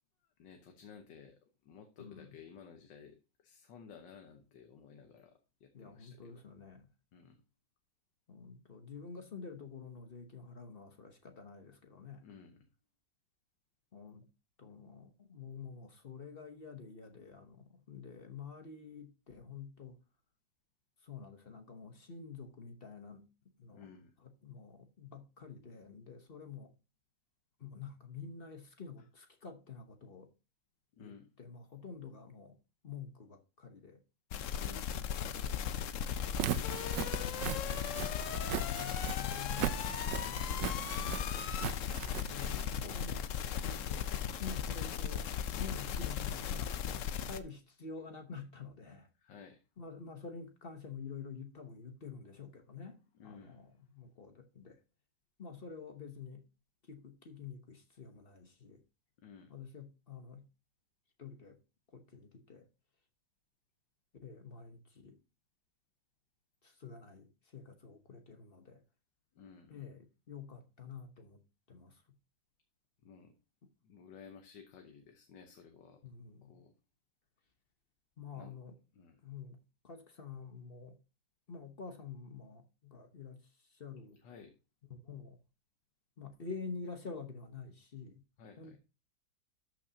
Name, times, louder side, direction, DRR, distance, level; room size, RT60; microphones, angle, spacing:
voice 1, 0.4-1.4 1.6-6.4 7.1-7.4 12.2-12.7 23.7-24.1 30.9-31.3 34.6-34.9 49.2-49.6 53.2-53.6 59.2-59.5 69.3-69.9 73.0-73.3 73.8-76.0 76.4-76.7 78.3-78.5 78.9-79.2 84.2-84.6 88.4-88.8, left 6 dB, 85° left, 1.7 m, -55 dB
voice 2, 2.0-2.4 5.7-6.9 8.3-12.2 13.9-14.3 14.6-20.0 21.0-23.3 23.6-23.9 24.2-26.7 27.6-30.3 31.0-32.6 32.8-34.0 35.1-38.0 38.5-41.0 42.1-43.3 43.6-44.1 44.4-45.3 45.6-49.1 49.8-54.8 55.4-56.4 56.8-58.8 59.5-60.5 61.2-61.6 61.9-62.7 64.2-65.2 66.6-68.8 69.7-72.0 73.6-73.7 76.0-76.6 78.2-78.8 79.2-79.6 79.8-81.0 81.5-84.2 84.9-85.4 86.2-88.2 88.6-88.8, left 5 dB, 40° left, 1.0 m, -48 dB
sound 1, 34.3-47.4, left 8 dB, 65° left, 0.8 m, -36 dB
Walk footsteps, 36.2-43.0, right 13 dB, 80° right, 1.2 m, -39 dB
13.0 x 6.1 x 2.7 m
omnidirectional pair, 1.9 m